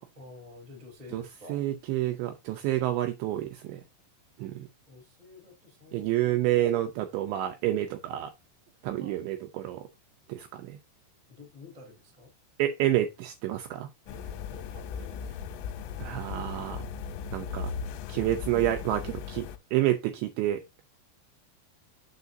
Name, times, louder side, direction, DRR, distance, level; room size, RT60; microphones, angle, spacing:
voice 1, 0.1-1.6 4.9-6.5 9.0-9.2 11.3-12.3 14.0-15.4, left 2 dB, 15° right, 1.6 m, -49 dB
voice 2, 1.5-3.8 4.4-4.7 5.9-8.3 8.8-9.9 10.3-10.8 12.6-13.9 16.0-16.8 17.3-17.7 18.1-20.6, right 13 dB, 80° right, 2.7 m, -29 dB
sound 1, 14.1-19.6, left 6 dB, 90° left, 3.2 m, -37 dB
7.1 x 6.7 x 2.6 m
omnidirectional pair, 5.8 m